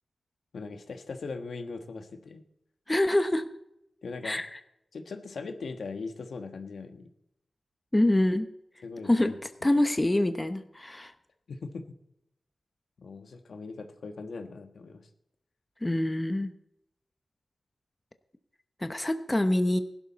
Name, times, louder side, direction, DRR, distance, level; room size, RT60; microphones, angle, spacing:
voice 1, 0.5-2.4 4.0-4.4 4.9-7.1 8.8-9.4 11.5-12.0 13.0-15.1, left 4 dB, 80° left, 6 dB, 1.3 m, -40 dB
voice 2, 2.9-3.4 4.2-4.6 7.9-8.5 9.1-9.3 9.6-11.1 15.8-16.5 18.8-19.8, left 1 dB, 20° left, 8 dB, 1.0 m, -25 dB
16.0 x 11.5 x 4.1 m, 0.79 s
wide cardioid pair, 75°, 0 cm